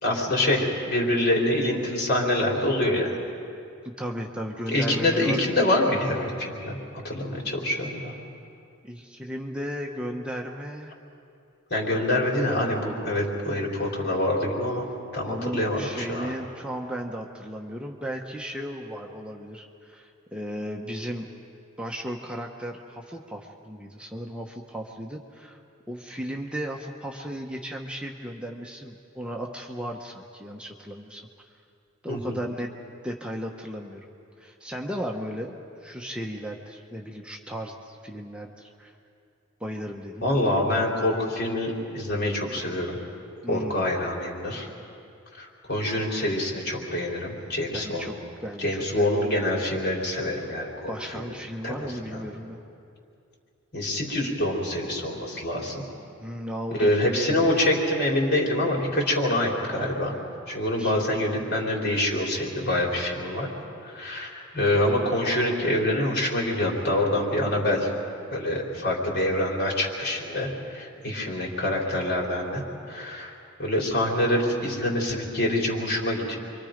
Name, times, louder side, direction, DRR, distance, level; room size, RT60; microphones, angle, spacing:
voice 1, 0.0-3.1 4.7-6.8 7.0-8.1 11.7-14.9 15.1-16.3 32.1-32.4 40.2-43.0 43.5-44.7 45.3-48.1 48.6-51.3 51.6-52.2 53.7-55.8 56.8-60.1 60.5-63.5 63.8-67.9 68.3-73.3 73.6-76.4, left 1 dB, 55° left, -1 dB, 3.8 m, -26 dB
voice 2, 3.8-5.4 8.8-10.9 15.2-21.3 21.8-25.6 25.9-31.2 32.0-34.1 34.4-38.9 39.6-40.3 42.5-42.6 43.4-43.9 47.7-48.1 48.4-49.2 50.9-52.6 56.2-57.6 60.8-61.0, equal, 5° right, 1 dB, 1.0 m, -35 dB
29.0 x 24.0 x 5.2 m, 2.6 s
head